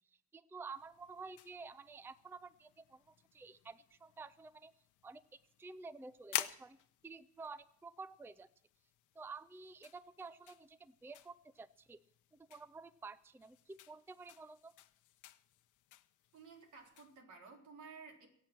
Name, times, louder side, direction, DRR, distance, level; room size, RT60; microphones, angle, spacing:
voice 1, 0.3-4.7 5.0-6.8 7.0-8.5 9.2-12.0 12.3-14.7, right 4 dB, 10° right, 17 dB, 0.4 m, -51 dB
sound 1, 0.7-17.2, left 13 dB, 85° left, 0.9 m, -50 dB
voice 2, 16.3-18.3, right 5 dB, 75° right, 1 dB, 3.9 m, -54 dB
22.0 x 8.5 x 6.0 m, 0.73 s
cardioid pair, 90°, 30 cm